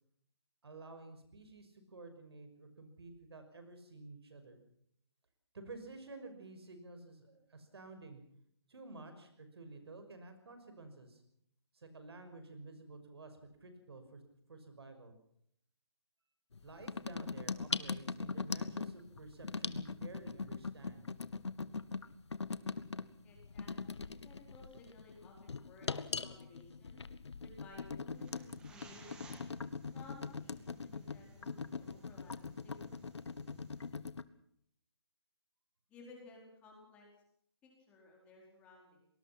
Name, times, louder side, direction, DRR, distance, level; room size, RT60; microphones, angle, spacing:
voice 1, 0.6-4.6 5.5-8.2 8.7-11.2 11.7-14.2 14.5-15.1 16.6-21.1, right 3 dB, 65° right, 8 dB, 6.0 m, -52 dB
sound 1, 16.5-34.2, left 4 dB, 85° left, 1.5 m, -41 dB
voice 2, 23.2-27.0 27.4-29.3 29.9-32.9 35.9-37.1 37.6-39.1, left 3 dB, 10° left, -1 dB, 4.6 m, -58 dB
sound 2, 28.1-33.9, right 3 dB, 5° right, 1.6 m, -60 dB
24.5 x 20.0 x 6.0 m, 0.69 s
hypercardioid pair, 170°, 14 cm